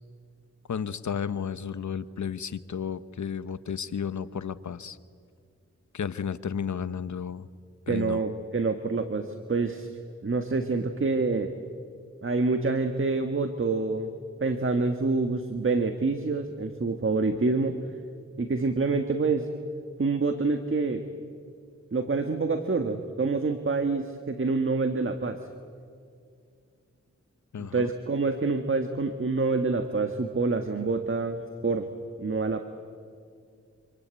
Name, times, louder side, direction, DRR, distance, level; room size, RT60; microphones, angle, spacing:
voice 1, 0.7-5.0 5.9-7.5 7.9-8.2 27.5-27.9, left 7 dB, 80° left, 14 dB, 1.0 m, -33 dB
voice 2, 7.9-9.9 10.2-11.5 12.2-14.1 14.4-17.8 18.4-19.5 20.0-21.0 21.9-25.4 27.6-31.9 32.2-32.6, right 3 dB, 45° right, 7 dB, 1.6 m, -27 dB
27.0 x 26.5 x 8.2 m, 2.2 s
wide cardioid pair, 60°, 29 cm